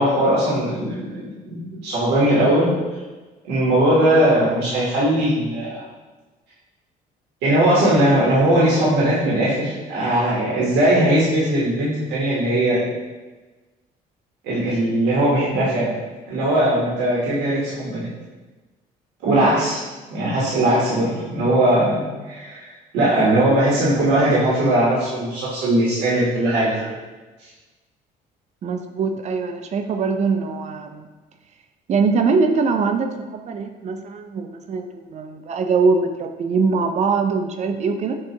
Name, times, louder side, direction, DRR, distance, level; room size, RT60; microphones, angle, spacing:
voice 1, 0.0-2.7 3.4-5.8 7.4-12.8 14.4-15.9 16.3-18.1 19.2-19.8 20.1-26.9, right 1 dB, 90° right, -7 dB, 1.2 m, -19 dB
voice 2, 28.6-31.1 31.9-38.2, right 4 dB, 40° right, 6 dB, 0.4 m, -22 dB
6.2 x 2.3 x 2.8 m, 1.2 s
cardioid pair, 110°, 17 cm